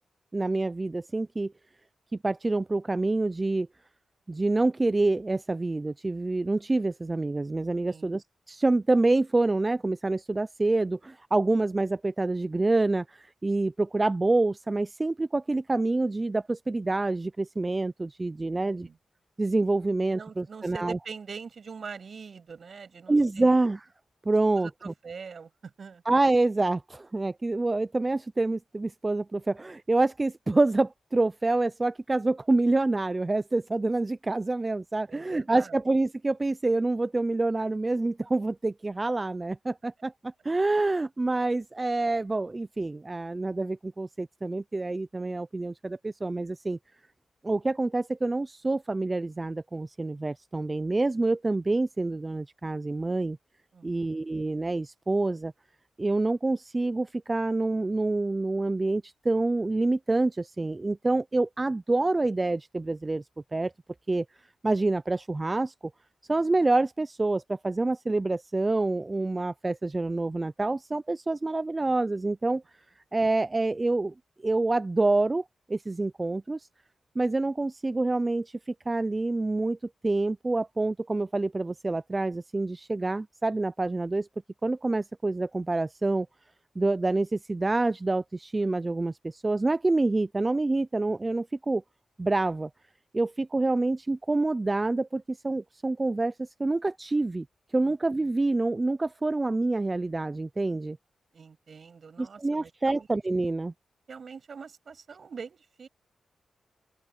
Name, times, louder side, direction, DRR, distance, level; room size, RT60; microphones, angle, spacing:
voice 1, 0.3-1.5 2.2-3.7 4.3-18.9 19.4-21.0 23.1-23.9 24.3-24.9 26.1-46.8 47.4-53.4 53.8-55.5 56.0-63.2 63.5-63.7 64.1-64.3 64.6-65.7 66.3-72.6 73.1-74.1 74.4-76.7 77.2-79.8 80.0-84.3 84.6-86.3 86.8-91.8 92.2-92.7 93.1-97.5 97.7-101.0 102.2-103.7, right 2 dB, 20° right, 0.4 m, -27 dB
voice 2, 7.8-8.2 18.5-19.0 20.1-23.6 24.5-26.0 35.1-35.8 53.7-54.1 97.8-98.0 101.3-103.1 104.1-105.9, right 5 dB, 50° right, 7.4 m, -43 dB
open air
wide cardioid pair, 115°, 0 cm